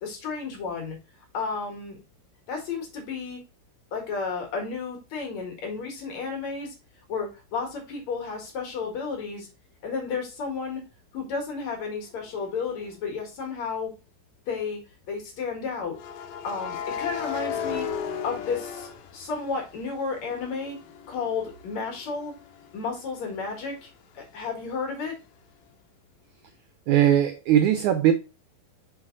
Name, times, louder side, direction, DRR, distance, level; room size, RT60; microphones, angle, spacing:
voice 1, 0.0-1.0 1.3-2.0 2.5-3.4 3.9-6.7 7.1-9.5 9.8-10.8 11.1-13.9 14.5-14.8 15.1-16.0 16.4-17.9 18.2-18.9 19.1-20.8 21.1-22.3 22.7-23.9 24.1-25.1, left 5 dB, 55° left, 2.7 m, -32 dB
sound 1, 12.6-12.9 15.9-19.8 20.2-23.8, left 7 dB, 80° left, 1.6 m, -35 dB
voice 2, 26.9-28.1, right 11 dB, 80° right, 1.7 m, -19 dB
6.1 x 4.1 x 3.8 m
omnidirectional pair, 4.1 m